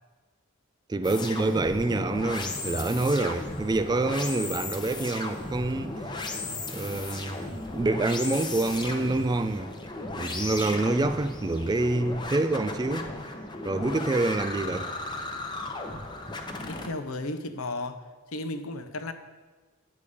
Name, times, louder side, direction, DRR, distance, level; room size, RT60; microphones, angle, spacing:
voice 1, 0.9-6.0 6.7-9.7 10.2-13.1 13.6-14.9, right 2 dB, 20° right, 0.3 m, -27 dB
sound 1, 1.0-16.9, left 2 dB, 20° left, 0.8 m, -36 dB
voice 2, 16.6-19.1, left 2 dB, 80° left, 0.8 m, -34 dB
9.7 x 6.9 x 4.9 m
head